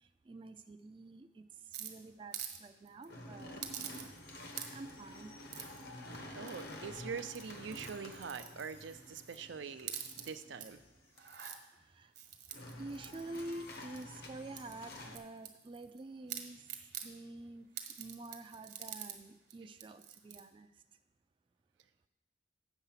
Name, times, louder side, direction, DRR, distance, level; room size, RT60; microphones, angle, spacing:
voice 1, 0.3-1.4 1.8-3.6 4.7-5.3 11.9-12.1 12.8-16.6 17.0-17.7 18.0-20.7, right 2 dB, 30° right, 8 dB, 0.4 m, -48 dB
sound 1, 1.7-2.6 2.9-3.1 3.6-4.2 4.5-4.9 5.5-5.8 6.5-6.9 7.2-9.4 9.8-10.7 11.1-11.6 12.1-14.2 14.6-16.0 16.3-17.1 17.8-19.2 19.5-19.6 19.8-20.4, right 9 dB, 65° right, 1.1 m, -46 dB
sound 2, 3.1-11.2 12.5-15.2, left 1 dB, 60° left, 1.0 m, -50 dB
voice 2, 6.3-10.8, right 6 dB, 85° right, 10 dB, 0.5 m, -44 dB
8.1 x 6.6 x 5.7 m, 0.96 s
head